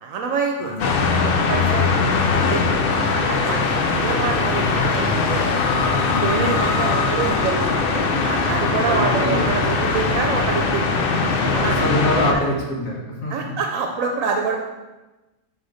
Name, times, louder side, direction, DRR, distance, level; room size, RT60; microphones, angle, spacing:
voice 1, 0.0-0.7 1.5-1.9 2.4-2.7 3.3-5.5 6.0-7.7 8.2-11.0 11.5-11.8 12.3-12.5 13.3-14.6, right 5 dB, 80° right, 2 dB, 1.0 m, -26 dB
voice 2, 0.6-2.0 6.1-6.8 8.7-10.2 11.6-13.5, left 1 dB, 80° left, -3 dB, 1.8 m, -27 dB
sound 1, 0.8-12.3, left 4 dB, 55° left, 0.7 m, -20 dB
6.0 x 3.9 x 4.9 m, 1.1 s
omnidirectional pair, 1.4 m